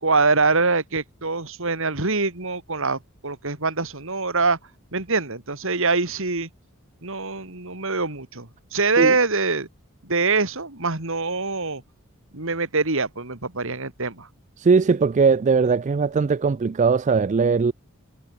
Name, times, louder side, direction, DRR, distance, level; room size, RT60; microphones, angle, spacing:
voice 1, 0.0-4.6 4.9-6.5 7.0-9.7 10.0-11.8 12.3-14.3, right 3 dB, 65° right, 3.3 m, -24 dB
voice 2, 14.6-17.7, right 5 dB, 35° right, 0.4 m, -19 dB
head